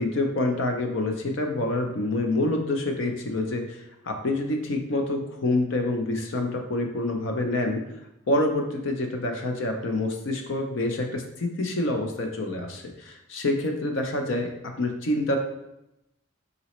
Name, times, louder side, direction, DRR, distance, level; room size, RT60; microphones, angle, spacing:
voice 1, 0.0-7.8 8.3-15.4, left 2 dB, 60° left, 3 dB, 0.5 m, -27 dB
4.0 x 3.9 x 3.0 m, 0.87 s
head